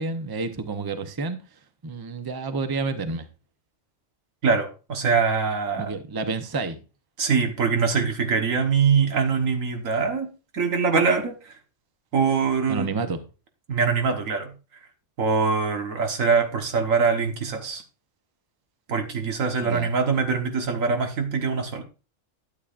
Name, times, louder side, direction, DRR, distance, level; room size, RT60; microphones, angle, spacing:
voice 1, 0.0-3.3 5.8-6.8 12.7-13.2 19.6-19.9, right 4 dB, 20° right, 0.7 m, -30 dB
voice 2, 4.4-5.9 7.2-10.3 10.5-11.5 12.1-12.9 13.7-14.5 15.2-17.8 18.9-21.8, right 5 dB, 90° right, 1.7 m, -23 dB
11.5 x 8.5 x 2.5 m
omnidirectional pair, 1.3 m